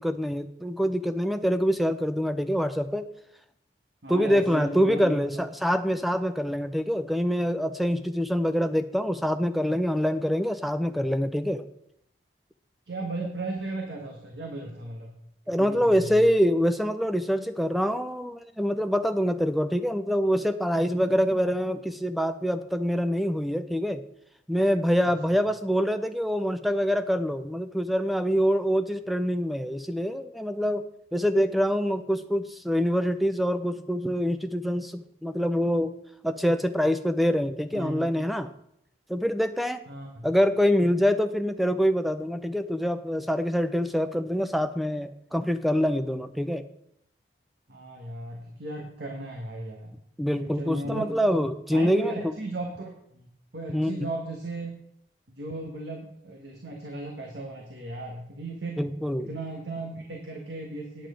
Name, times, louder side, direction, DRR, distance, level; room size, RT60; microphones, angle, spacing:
voice 1, 0.0-3.1 4.1-11.6 15.5-24.0 24.5-30.8 31.1-35.9 36.2-38.5 39.1-39.8 40.2-46.6 50.2-52.1 53.7-54.0 58.8-59.3, equal, ahead, 10 dB, 0.5 m, -25 dB
voice 2, 4.0-5.2 12.9-15.1 15.4-16.2 25.0-25.4 37.7-38.1 39.9-40.3 47.7-49.9 50.4-51.2 51.7-53.3 53.5-54.7 55.3-58.8 59.2-61.1, right 2 dB, 75° right, 0 dB, 1.6 m, -36 dB
9.0 x 8.9 x 5.1 m, 0.74 s
head